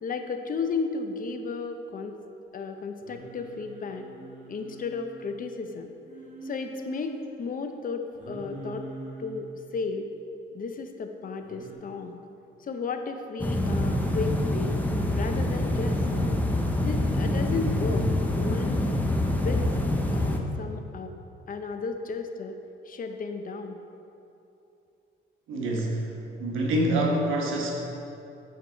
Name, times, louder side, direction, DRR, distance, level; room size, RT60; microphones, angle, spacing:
voice 1, 0.0-2.2 2.5-4.1 4.5-5.9 6.4-7.1 7.4-8.9 9.2-10.1 10.5-12.2 12.6-14.8 15.1-16.3 16.8-18.1 18.3-18.9 19.3-19.7 20.1-21.1 21.5-22.6 22.8-23.8, left 4 dB, 45° left, 6 dB, 0.7 m, -34 dB
Singing, 3.0-5.4 6.1-7.2 8.1-9.5 11.4-11.7, right 2 dB, 35° right, 1.5 m, -43 dB
sound 1, 13.4-20.4, left 1 dB, 10° left, 0.7 m, -26 dB
voice 2, 25.5-26.1 26.4-27.8, right 1 dB, 85° right, -1 dB, 1.3 m, -26 dB
9.1 x 4.8 x 4.5 m, 2.8 s
cardioid pair, 90°, 20 cm